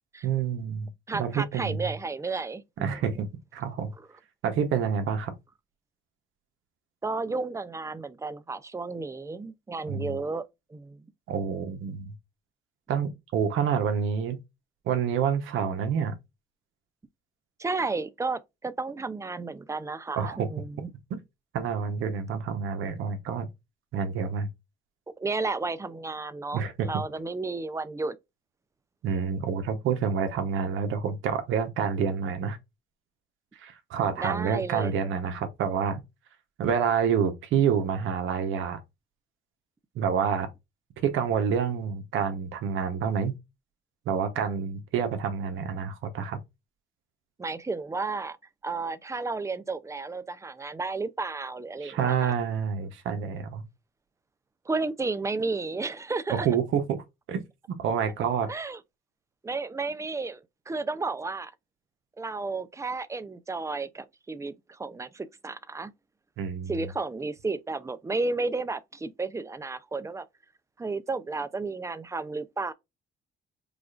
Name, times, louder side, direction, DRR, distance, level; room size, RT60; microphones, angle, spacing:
voice 1, 0.2-1.9 2.8-3.3 3.5-3.9 4.4-5.3 9.9-10.2 11.3-12.1 12.9-14.4 14.9-16.1 20.2-20.5 21.1-21.2 21.5-23.5 23.9-24.5 26.5-26.9 29.0-32.6 33.6-36.0 36.6-38.8 39.9-40.5 41.0-43.3 44.1-46.4 51.8-53.6 56.3-57.0 57.3-57.4 57.8-58.5 66.4-66.8, right 7 dB, 85° right, 0.9 m, -28 dB
voice 2, 1.1-3.2 7.0-10.4 10.7-11.0 17.6-20.9 25.1-28.2 34.2-34.9 47.4-48.4 48.6-52.3 54.7-56.5 58.5-58.8 59.4-61.5 62.2-65.9 66.7-70.2 70.8-72.7, right 3 dB, 15° right, 0.4 m, -32 dB
4.9 x 2.4 x 2.4 m
cardioid pair, 90°, 20 cm